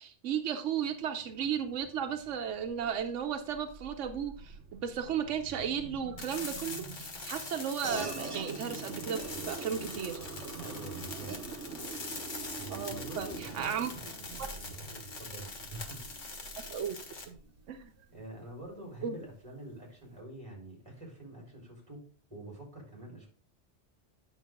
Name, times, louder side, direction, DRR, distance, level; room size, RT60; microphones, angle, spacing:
voice 1, 0.0-10.2 12.7-13.9 14.4-14.5 16.7-17.0 17.3-17.4 17.7-17.9 19.0-19.2, right 8 dB, 90° right, 7 dB, 1.1 m, -35 dB
sound 1, 0.8-18.6, right 5 dB, 70° right, 1.3 m, -46 dB
sound 2, 6.2-17.2, left 3 dB, 90° left, 1.9 m, -43 dB
sound 3, 7.8-17.7, right 1 dB, 50° right, 2.1 m, -47 dB
voice 2, 10.6-11.3 12.6-14.2 14.6-16.1 18.1-22.0 22.3-23.3, right 1 dB, 25° right, -2 dB, 4.2 m, -47 dB
9.2 x 6.4 x 3.7 m, 0.41 s
omnidirectional pair, 1.2 m